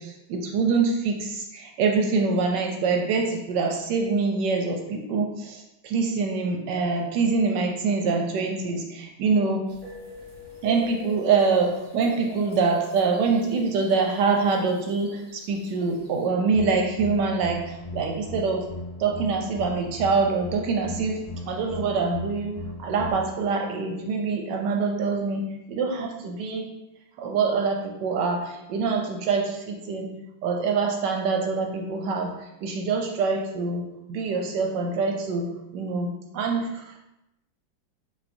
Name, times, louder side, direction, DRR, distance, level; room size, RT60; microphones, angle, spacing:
voice 1, 0.0-9.6 10.6-18.7 19.0-21.2 21.5-25.4 25.7-26.7 27.2-30.1 30.4-32.3 32.6-37.0, right 4 dB, 70° right, 2 dB, 1.1 m, -25 dB
sound 1, 9.7-16.2, left 3 dB, 5° right, 0.8 m, -44 dB
sound 2, 16.5-23.1, left 2 dB, 75° left, 1.6 m, -38 dB
5.2 x 2.6 x 2.6 m, 0.90 s
omnidirectional pair, 2.2 m